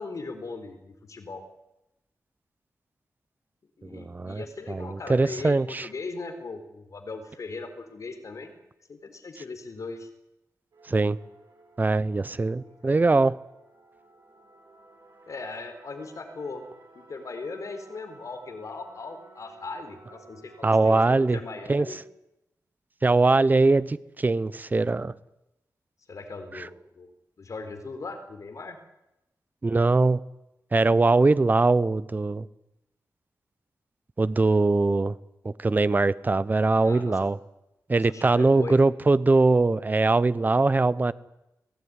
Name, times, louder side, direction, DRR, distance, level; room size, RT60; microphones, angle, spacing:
voice 1, 0.0-1.4 3.8-8.5 8.9-10.1 12.3-13.0 15.3-16.7 16.9-22.0 26.1-27.1 27.4-28.8 36.8-37.3 38.1-38.8, left 3 dB, 55° left, 7 dB, 4.0 m, -39 dB
voice 2, 3.9-5.9 10.9-11.2 11.8-13.4 20.6-21.4 21.7-21.9 23.0-25.1 26.5-26.7 29.6-30.2 30.7-32.5 34.2-35.2 35.4-37.4 37.9-41.1, right 3 dB, 25° right, 17 dB, 0.8 m, -22 dB
sound 1, 10.7-21.3, right 3 dB, 75° right, 7.9 m, -55 dB
25.5 x 17.5 x 9.7 m, 0.91 s
wide cardioid pair, 125°, 7 cm